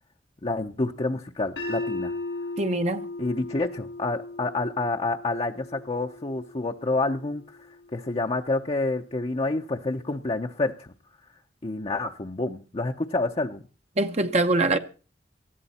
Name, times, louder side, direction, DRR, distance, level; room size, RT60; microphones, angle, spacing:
voice 1, 0.4-2.1 3.2-7.6 7.9-10.9 11.6-13.6, left 2 dB, 35° left, 0.7 m, -28 dB
sound 1, 1.6-7.7, left 2 dB, 90° left, 4.3 m, -36 dB
voice 2, 2.6-3.1 14.0-14.8, right 2 dB, 40° right, 0.8 m, -23 dB
19.0 x 13.5 x 4.2 m
head